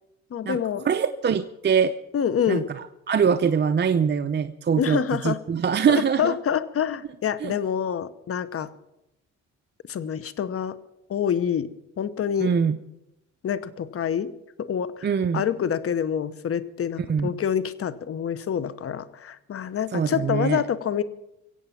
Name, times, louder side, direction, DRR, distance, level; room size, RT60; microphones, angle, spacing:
voice 1, 0.3-0.9 2.1-2.7 4.8-5.4 5.9-8.7 9.9-10.8 11.1-11.7 12.0-12.5 13.4-14.3 14.6-15.1 15.3-21.0, left 8 dB, 50° left, 16 dB, 1.0 m, -26 dB
voice 2, 0.8-1.9 2.5-2.6 3.1-6.4 7.4-7.5 12.4-12.8 15.0-15.4 17.0-17.3 19.9-20.6, right 7 dB, 35° right, 9 dB, 0.6 m, -23 dB
24.0 x 8.2 x 5.9 m, 0.87 s
cardioid pair, 90°, 30 cm